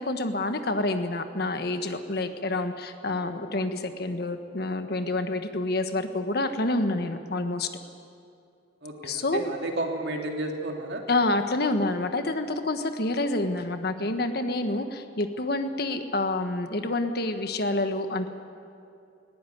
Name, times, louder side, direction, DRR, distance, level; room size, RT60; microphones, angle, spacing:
voice 1, 0.0-7.7 9.0-9.4 11.1-18.3, left 2 dB, 60° left, 7 dB, 1.4 m, -28 dB
voice 2, 8.8-11.0, right 2 dB, 65° right, 1 dB, 2.8 m, -32 dB
19.0 x 17.5 x 9.4 m, 2.5 s
head